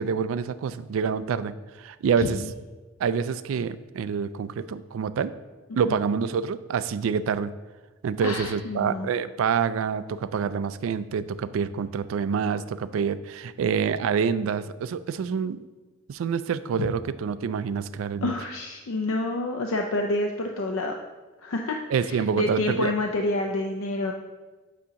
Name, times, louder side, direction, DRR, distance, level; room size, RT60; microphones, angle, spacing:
voice 1, 0.0-2.4 3.0-5.3 5.7-7.5 8.0-15.6 16.1-18.3 21.9-22.9, right 6 dB, 90° right, 15 dB, 0.3 m, -27 dB
voice 2, 2.2-2.5 5.7-6.0 8.2-9.1 16.8-16.9 18.2-20.9 21.4-21.8 22.0-24.1, left 2 dB, 80° left, 3 dB, 0.5 m, -28 dB
8.4 x 2.8 x 5.1 m, 1.3 s
head